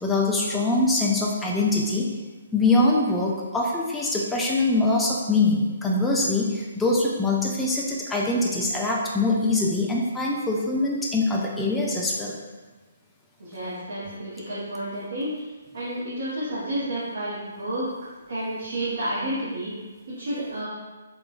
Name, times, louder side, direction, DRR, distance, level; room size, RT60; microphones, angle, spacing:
voice 1, 0.0-2.1 2.5-12.4, left 2 dB, 5° left, -3 dB, 0.3 m, -23 dB
voice 2, 13.4-15.5 15.7-17.9 18.3-19.7 20.1-20.7, right 1 dB, 60° right, -9 dB, 0.7 m, -30 dB
3.0 x 2.2 x 2.3 m, 1.3 s
figure-of-eight pair, 135°, 0 cm